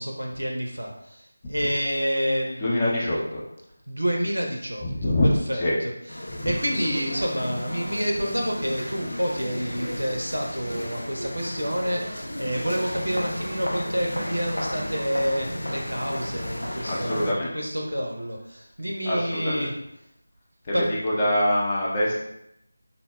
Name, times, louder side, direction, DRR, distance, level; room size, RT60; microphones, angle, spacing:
voice 1, 0.0-3.0 3.9-5.9 6.2-19.7 20.7-20.9, equal, 90° right, 0 dB, 0.5 m, -28 dB
voice 2, 2.6-3.4 4.8-5.8 6.3-6.5 16.8-17.5 19.0-19.7 20.6-22.2, left 1 dB, 20° left, -5 dB, 0.5 m, -24 dB
sound 1, 6.1-17.3, left 1 dB, 75° left, 0.4 m, -33 dB
3.7 x 2.0 x 2.3 m, 0.79 s
figure-of-eight pair, 165°, 0 cm